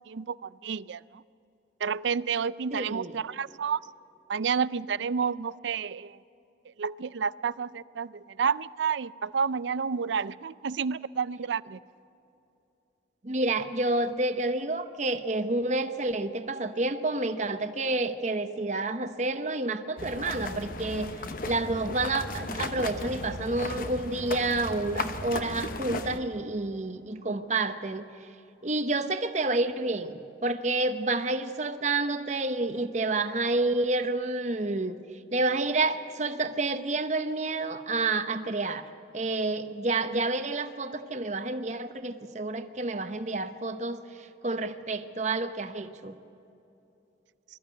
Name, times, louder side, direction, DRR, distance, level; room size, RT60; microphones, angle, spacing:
voice 1, 0.1-1.2 1.8-3.8 4.3-6.2 6.8-11.8, right 6 dB, 75° right, 19 dB, 0.4 m, -30 dB
voice 2, 2.7-3.2 13.2-28.1 28.6-35.0 35.3-38.9 39.1-46.1, right 2 dB, 40° right, 9 dB, 0.8 m, -29 dB
sound 1, 20.0-26.2, left 3 dB, 50° left, 0.9 m, -36 dB
21.5 x 14.0 x 9.3 m, 2.9 s
head